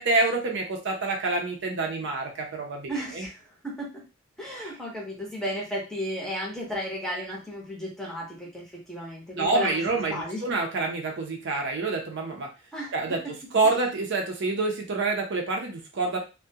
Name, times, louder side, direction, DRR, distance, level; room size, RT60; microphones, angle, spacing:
voice 1, 0.0-3.3 4.6-4.7 9.3-12.5 12.9-13.2 13.5-16.2, right 3 dB, 60° right, 1 dB, 0.6 m, -27 dB
voice 2, 2.8-4.0 4.4-10.6 12.7-12.9, equal, ahead, -4 dB, 0.7 m, -34 dB
2.3 x 2.2 x 2.7 m, 0.30 s
head